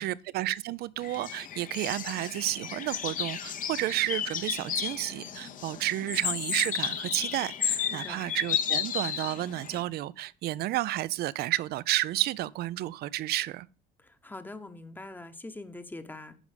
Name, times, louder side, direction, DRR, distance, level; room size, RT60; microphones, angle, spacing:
voice 1, 0.0-13.7, right 15 dB, 70° right, 0.4 m, -31 dB
sound 1, 1.0-9.8, left 9 dB, 50° left, 0.9 m, -33 dB
voice 2, 7.9-8.3 14.0-16.4, left 2 dB, 10° left, 0.9 m, -43 dB
9.9 x 5.3 x 5.0 m
cardioid pair, 110°, 17 cm